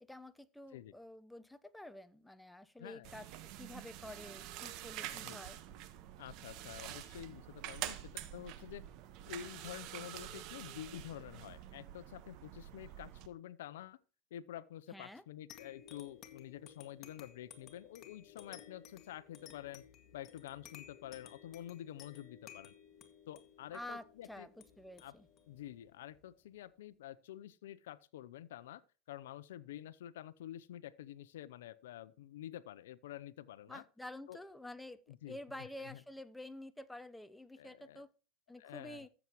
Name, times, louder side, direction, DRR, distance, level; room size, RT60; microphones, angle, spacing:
voice 1, 0.0-5.6 14.9-15.2 23.7-25.3 33.7-38.1 38.5-39.1, left 1 dB, 5° left, 0.9 m, -49 dB
voice 2, 2.8-3.2 5.1-5.4 6.2-8.8 9.3-14.0 14.3-19.8 20.1-22.7 23.3-24.5 25.0-25.1 25.5-28.8 29.1-33.8 34.3-34.4 35.1-36.0 37.6-38.0 38.6-39.1, left 12 dB, 90° left, 0.6 m, -49 dB
sound 1, 3.0-13.3, right 12 dB, 60° right, 1.3 m, -47 dB
sound 2, 15.5-26.6, left 9 dB, 40° left, 2.0 m, -57 dB
14.0 x 7.2 x 3.1 m
supercardioid pair, 115°, 0 cm